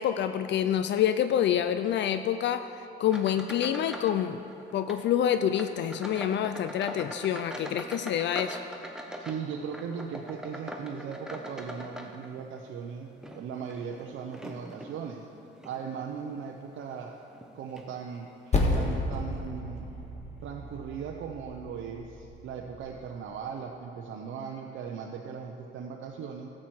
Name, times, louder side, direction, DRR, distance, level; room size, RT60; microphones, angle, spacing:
voice 1, 0.0-4.4 4.7-8.6, left 10 dB, 65° left, 10 dB, 0.4 m, -27 dB
sound 1, 3.0-4.2 4.5-5.0 5.5-12.6 13.1-14.9 15.6-15.8 16.4-16.5 17.4-17.5 17.8-17.9, equal, 5° right, 0.9 m, -42 dB
voice 2, 9.2-13.1 13.4-15.3 15.6-17.2 17.5-19.9 20.4-26.5, right 6 dB, 75° right, 1 dB, 0.7 m, -38 dB
Percussion, 18.5-23.4, left 2 dB, 35° left, 1.6 m, -32 dB
13.0 x 7.5 x 4.6 m, 2.8 s
cardioid pair, 90°, 20 cm